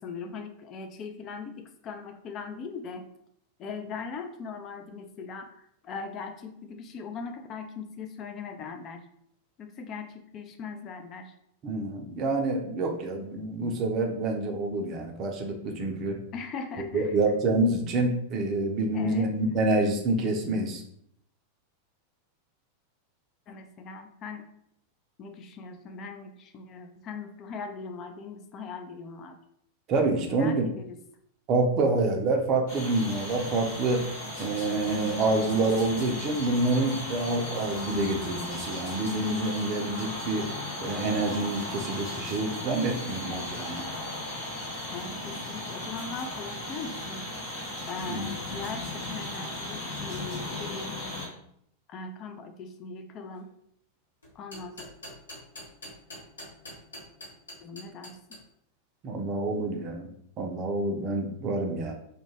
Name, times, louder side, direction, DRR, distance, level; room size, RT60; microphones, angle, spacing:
voice 1, 0.0-3.1 3.6-5.5 5.8-9.0 9.6-11.3 16.3-17.1 18.9-19.3 23.5-24.4 25.2-29.4 30.3-31.0 44.9-47.3 47.9-51.0 51.9-53.5 54.4-54.9 57.6-58.4, left 5 dB, 35° left, 5 dB, 0.3 m, -40 dB
voice 2, 11.6-16.2 16.8-20.8 29.9-30.6 31.5-34.0 34.4-40.5 40.8-43.8 48.1-48.3 59.0-60.1 60.4-61.9, right 2 dB, 35° right, 3 dB, 0.5 m, -27 dB
sound 1, 32.7-51.3, left 1 dB, 50° left, 1.0 m, -36 dB
sound 2, 54.2-58.4, left 1 dB, 75° left, 0.9 m, -43 dB
2.2 x 2.1 x 3.1 m, 0.70 s
figure-of-eight pair, 90°, 0 cm